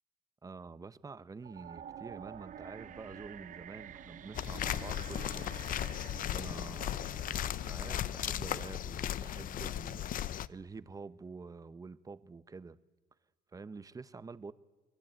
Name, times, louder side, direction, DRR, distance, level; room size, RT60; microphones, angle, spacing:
voice 1, 0.4-5.5 5.9-12.8 13.5-14.5, right 4 dB, 20° right, 0.9 m, -48 dB
sound 1, 1.4-8.5, right 9 dB, 50° right, 0.8 m, -50 dB
sound 2, 1.9-8.2, left 6 dB, 80° left, 2.8 m, -64 dB
sound 3, 4.3-10.5, left 11 dB, 55° left, 0.8 m, -36 dB
29.5 x 21.5 x 9.1 m
cardioid pair, 110°, 17 cm